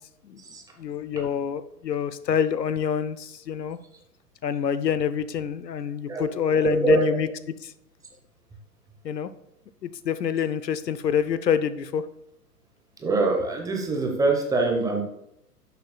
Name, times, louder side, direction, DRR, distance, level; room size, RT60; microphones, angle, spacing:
voice 1, 0.8-3.8 4.4-7.3 7.6-7.7 9.0-9.3 9.8-12.0, left 7 dB, 85° left, 14 dB, 0.6 m, -26 dB
voice 2, 6.6-7.1 13.0-15.0, right 3 dB, 5° right, 1 dB, 0.8 m, -24 dB
11.5 x 6.6 x 2.3 m, 0.82 s
figure-of-eight pair, 115°, 48 cm